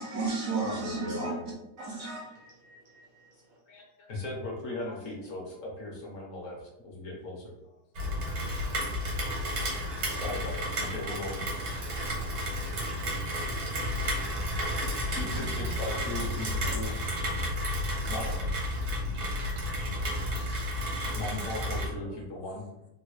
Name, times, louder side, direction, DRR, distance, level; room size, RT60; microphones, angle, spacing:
voice 1, 0.0-1.3 1.8-3.0, right 3 dB, 70° right, -1 dB, 0.8 m, -34 dB
voice 2, 0.6-1.4 3.7-7.5 10.2-11.7 15.1-16.9 18.1-18.5 21.1-22.6, left 2 dB, 55° left, -2 dB, 1.1 m, -38 dB
Rain, 8.0-21.9, equal, 85° right, 1.7 m, -32 dB
voice 3, 8.3-8.8 13.3-13.4 16.4-17.0 17.4-17.7 19.5-20.7 21.4-21.5 22.0-22.2, left 3 dB, 80° left, 1 dB, 1.2 m, -54 dB
3.5 x 2.1 x 3.1 m, 0.91 s
omnidirectional pair, 1.8 m